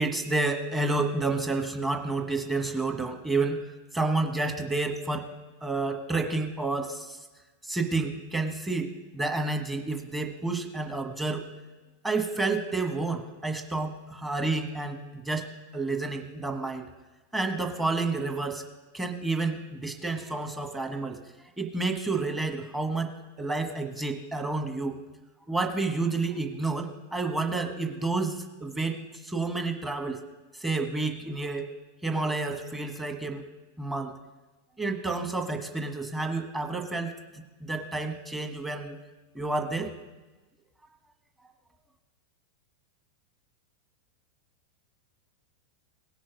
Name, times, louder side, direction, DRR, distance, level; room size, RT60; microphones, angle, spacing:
voice 1, 0.0-3.6 3.9-5.3 5.6-7.2 7.6-8.9 9.1-11.4 12.0-16.8 17.3-18.6 18.9-21.2 21.6-23.1 23.4-25.0 25.5-29.0 29.2-30.2 30.6-31.7 32.0-33.4 33.8-34.1 34.8-37.1 37.6-39.0 39.3-39.9, right 3 dB, 10° right, 5 dB, 1.4 m, -30 dB
17.5 x 6.1 x 5.1 m, 1.2 s
figure-of-eight pair, 90°, 0 cm